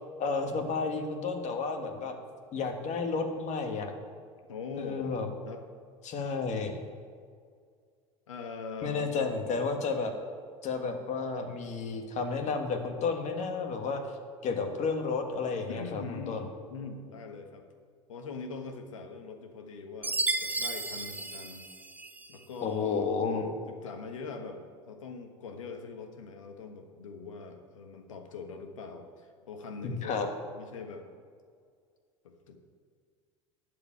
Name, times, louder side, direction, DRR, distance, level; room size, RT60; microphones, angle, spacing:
voice 1, 0.2-2.1 2.5-3.9 4.8-5.3 6.0-6.8 8.8-10.1 10.6-14.0 14.4-16.5 22.6-23.5 29.8-30.3, left 4 dB, 45° left, 5 dB, 1.8 m, -31 dB
voice 2, 4.5-5.1 5.4-5.6 8.3-9.3 15.7-16.4 16.7-17.7 18.1-21.7 22.3-24.6 24.9-30.3 30.5-31.0 32.2-32.6, left 4 dB, 85° left, 5 dB, 1.4 m, -42 dB
Chime, 20.0-22.4, right 2 dB, 10° right, 0.7 m, -33 dB
12.0 x 5.1 x 8.6 m, 2.1 s
hypercardioid pair, 80°, 16 cm